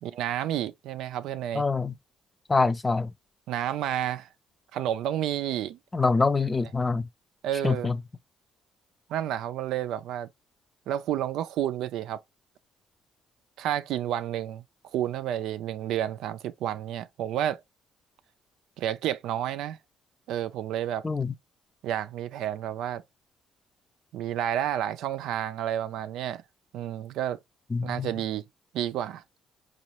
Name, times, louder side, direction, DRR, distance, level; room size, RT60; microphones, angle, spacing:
voice 1, 0.0-1.6 3.5-4.3 4.7-5.8 7.4-7.9 9.1-10.3 10.9-12.2 13.6-14.6 14.9-17.6 18.8-19.8 20.3-21.0 21.8-23.0 24.1-26.4 26.7-27.4 27.8-28.4 28.7-29.2, right 11 dB, 75° right, 0.4 m, -30 dB
voice 2, 1.5-1.9 2.5-3.1 5.9-7.1 7.6-8.0 21.0-21.3 27.7-28.1, left 4 dB, 25° left, 0.5 m, -25 dB
4.2 x 2.4 x 2.9 m
supercardioid pair, 70°, 0 cm